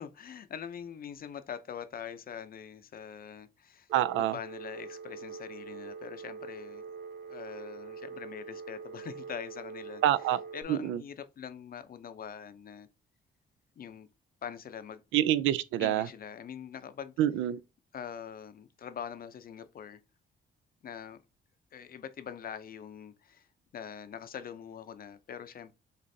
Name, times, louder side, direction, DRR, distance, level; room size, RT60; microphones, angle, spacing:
voice 1, 0.0-3.9 4.2-6.8 7.2-10.0 10.5-12.9 13.8-14.1 14.4-15.0 15.8-17.1 17.9-20.0 20.8-21.2 21.7-23.5 23.7-25.7, left 8 dB, 50° left, 0.6 m, -43 dB
Telephone, 3.9-10.6, right 5 dB, 60° right, 0.8 m, -44 dB
voice 2, 3.9-4.3 10.0-10.4 10.7-11.0 15.1-16.1 17.2-17.6, right 12 dB, 85° right, 0.4 m, -26 dB
6.5 x 2.5 x 2.7 m
cardioid pair, 90°, 20 cm